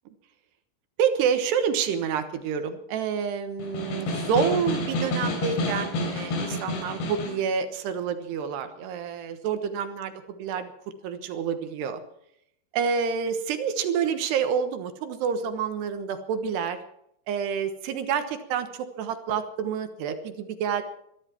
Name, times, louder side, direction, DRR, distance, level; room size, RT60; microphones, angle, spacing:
voice 1, 1.0-10.1 10.4-10.7 11.0-12.0 12.7-16.8 17.3-20.8, right 7 dB, 70° right, 8 dB, 3.2 m, -28 dB
Snare drum, 3.6-7.4, left 1 dB, 70° left, 5.5 m, -29 dB
23.0 x 12.5 x 4.5 m, 0.73 s
omnidirectional pair, 5.2 m